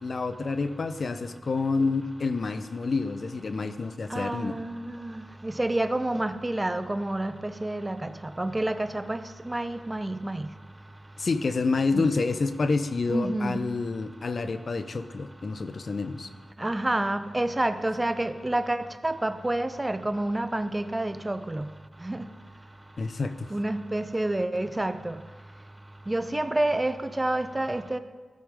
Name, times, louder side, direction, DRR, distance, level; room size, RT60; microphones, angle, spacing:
voice 1, 0.0-4.6 11.2-16.3 23.0-23.5, left 3 dB, 60° left, 11 dB, 0.6 m, -28 dB
voice 2, 4.1-8.1 8.4-10.5 11.9-12.1 13.1-13.6 16.6-21.7 22.0-22.3 23.5-25.2 26.1-28.0, right 1 dB, 20° right, 11 dB, 0.6 m, -29 dB
13.0 x 5.2 x 4.9 m, 1.3 s
cardioid pair, 45°, 0 cm